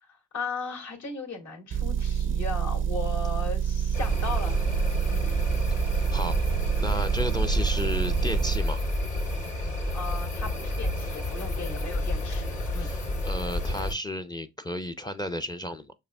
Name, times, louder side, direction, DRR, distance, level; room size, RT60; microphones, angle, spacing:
voice 1, 0.1-4.6 5.1-5.3 9.9-12.9, left 3 dB, 65° left, 2.4 m, -37 dB
Motor vehicle (road) / Engine, 1.7-8.6, right 8 dB, 45° right, 0.4 m, -27 dB
sound 1, 3.9-13.9, left 1 dB, 85° left, 2.5 m, -30 dB
voice 2, 6.8-8.8 12.8-15.9, left 1 dB, 15° left, 0.5 m, -33 dB
6.7 x 2.6 x 2.2 m
cardioid pair, 90°, 30 cm